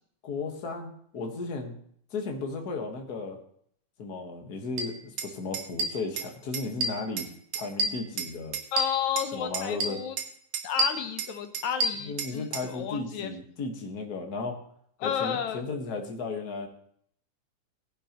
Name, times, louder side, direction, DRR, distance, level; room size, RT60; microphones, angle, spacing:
voice 1, 0.2-1.7 2.1-3.4 4.0-7.3 7.5-8.6 9.3-10.0 12.0-14.6 15.0-16.7, left 3 dB, 40° left, 3 dB, 1.6 m, -35 dB
sound 1, 4.8-4.9 5.2-5.3 5.5-6.3 6.5-7.3 7.5-9.3 9.5-10.3 10.5-12.7, right 2 dB, 65° right, 2.4 m, -29 dB
voice 2, 8.7-10.2 10.6-13.3 15.0-15.6, left 8 dB, 75° left, 7 dB, 2.2 m, -32 dB
18.0 x 11.0 x 3.1 m, 0.65 s
omnidirectional pair, 3.5 m